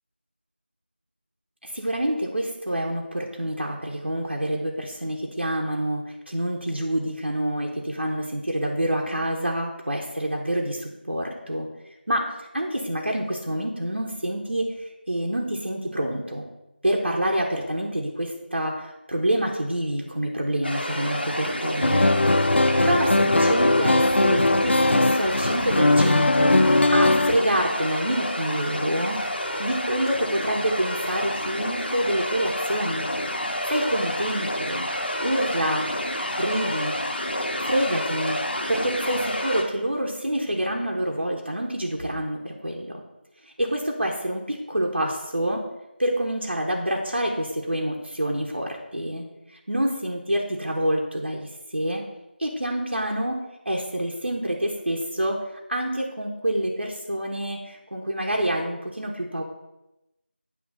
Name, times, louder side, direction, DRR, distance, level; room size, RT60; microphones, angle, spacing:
voice 1, 1.6-11.7 12.1-16.4 16.8-22.2 22.8-29.2 29.6-33.1 33.7-34.9 35.2-35.9 36.4-37.0 37.6-38.4 38.7-43.0 43.4-45.6 46.0-52.0 52.4-53.4 53.6-55.4 55.7-59.4, right 1 dB, 75° right, -1 dB, 1.3 m, -27 dB
sound 1, 20.6-39.6, left 1 dB, 60° left, 1.2 m, -29 dB
sound 2, 21.8-27.4, left 2 dB, 80° left, 0.5 m, -19 dB
Chewing mastication, 25.0-38.2, equal, 5° right, 1.1 m, -49 dB
8.6 x 3.3 x 6.2 m, 0.93 s
figure-of-eight pair, 175°, 6 cm